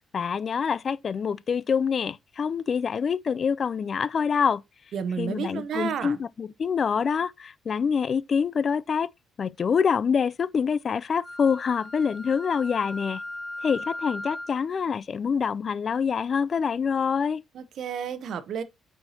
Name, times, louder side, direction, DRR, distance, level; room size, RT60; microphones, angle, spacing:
voice 1, 0.1-4.6 5.2-9.1 9.4-13.2 13.6-17.4, left 6 dB, 45° left, 0.3 m, -26 dB
voice 2, 4.9-6.2 17.5-18.6, right 7 dB, 70° right, 0.8 m, -31 dB
Wind instrument woodwind instrument, 11.2-14.6, left 1 dB, ahead, 3.2 m, -38 dB
8.8 x 4.5 x 2.7 m
cardioid pair, 90°, 0 cm